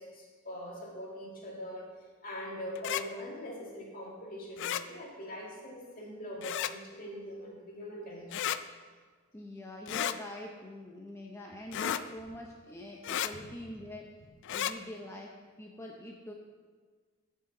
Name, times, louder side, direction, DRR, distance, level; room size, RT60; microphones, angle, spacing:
voice 1, 0.0-1.9 2.2-8.5 13.3-13.4, equal, 45° left, -2 dB, 1.9 m, -42 dB
sound 1, 2.7-3.0 4.6-4.8 6.4-6.7 8.3-8.6 9.9-10.2 11.7-12.0 13.0-13.3 14.4-14.7, left 10 dB, 60° left, 0.3 m, -33 dB
voice 2, 9.3-14.1 14.5-16.3, left 1 dB, 15° left, -1 dB, 0.6 m, -44 dB
14.0 x 5.6 x 3.8 m, 1.5 s
head